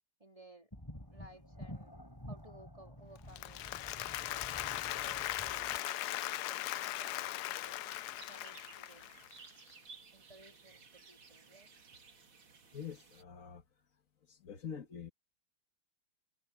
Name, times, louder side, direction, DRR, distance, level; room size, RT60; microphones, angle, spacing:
voice 1, 0.2-0.7 1.1-1.9 2.3-7.8 8.2-9.2 10.1-10.8 11.1-11.8 12.7-12.8, right 1 dB, 15° right, 3.6 m, -59 dB
sound 1, 0.7-5.8, equal, 10° left, 4.8 m, -50 dB
Applause, 3.2-9.4, left 14 dB, 80° left, 0.9 m, -39 dB
sound 2, 7.8-13.2, right 5 dB, 70° right, 3.5 m, -57 dB
voice 2, 12.7-13.6 14.3-15.1, left 7 dB, 40° left, 1.8 m, -45 dB
omnidirectional pair, 2.3 m